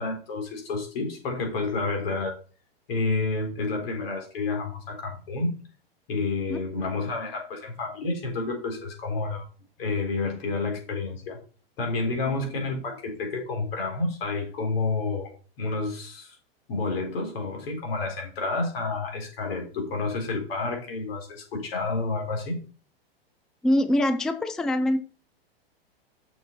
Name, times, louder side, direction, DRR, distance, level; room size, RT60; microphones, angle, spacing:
voice 1, 0.0-2.3 2.9-5.5 6.1-9.5 9.8-11.4 11.8-15.3 15.6-16.4 16.7-22.6, left 3 dB, 70° left, 3.9 m, -29 dB
voice 2, 23.6-25.0, left 1 dB, ahead, 0.3 m, -23 dB
6.9 x 6.1 x 4.3 m
hypercardioid pair, 125°, 30 cm